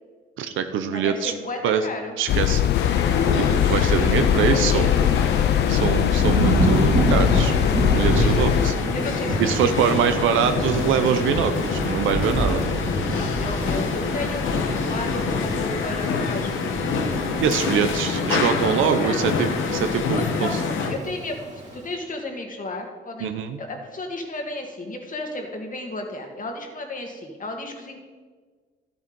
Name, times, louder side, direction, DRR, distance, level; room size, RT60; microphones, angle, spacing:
voice 1, 0.4-1.3 1.6-1.8 2.2-2.6 3.3-5.0 5.7-7.6 7.9-8.7 9.4-12.6 17.4-20.6 23.2-23.6, right 8 dB, 85° right, 8 dB, 0.8 m, -24 dB
voice 2, 0.9-2.1 3.9-4.9 5.2-6.0 7.9-8.6 8.9-10.1 13.1-16.9 18.0-19.3 20.1-23.3 23.6-28.0, left 2 dB, 40° left, 3 dB, 2.3 m, -34 dB
sound 1, 2.3-8.7, left 11 dB, 60° left, 0.4 m, -21 dB
sound 2, 2.7-21.0, left 4 dB, 80° left, 1.4 m, -26 dB
Thunder / Rain, 6.2-21.8, right 1 dB, 35° right, 2.3 m, -28 dB
12.0 x 8.1 x 5.3 m, 1.4 s
cardioid pair, 90°, 20 cm